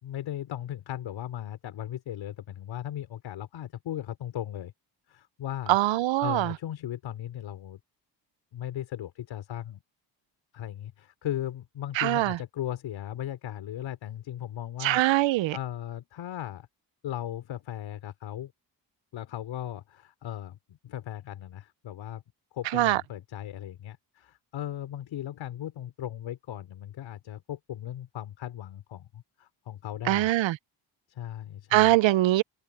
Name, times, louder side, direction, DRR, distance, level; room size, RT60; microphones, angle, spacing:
voice 1, 0.0-4.7 5.1-5.8 6.2-7.8 8.5-9.8 10.5-15.0 15.3-16.7 17.0-18.5 19.1-22.2 22.5-30.3 31.1-32.0, left 11 dB, 80° left, 4.5 m, -37 dB
voice 2, 5.7-6.5 12.0-12.4 14.8-15.6 22.7-23.0 30.1-30.6 31.7-32.4, right 16 dB, 80° right, 0.7 m, -23 dB
open air
cardioid pair, 120°, 44 cm